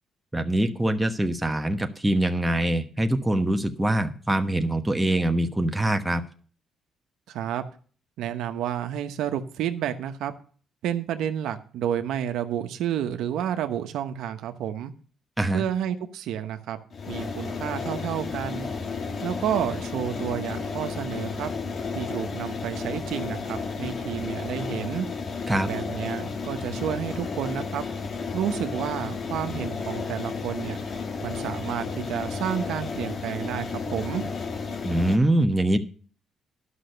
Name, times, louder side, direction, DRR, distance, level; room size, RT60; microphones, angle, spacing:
voice 1, 0.3-6.2 15.4-15.6 25.5-25.7 34.8-35.8, right 1 dB, 10° right, 6 dB, 1.1 m, -24 dB
voice 2, 7.3-7.6 8.2-10.3 10.8-14.9 15.5-16.8 17.1-18.7 19.2-21.5 21.9-25.1 25.6-27.8 28.3-30.8 31.2-34.3, right 10 dB, 85° right, 7 dB, 0.9 m, -30 dB
sound 1, 16.9-35.2, left 5 dB, 50° left, 1.4 m, -32 dB
11.5 x 6.1 x 6.7 m, 0.42 s
cardioid pair, 90°, 0 cm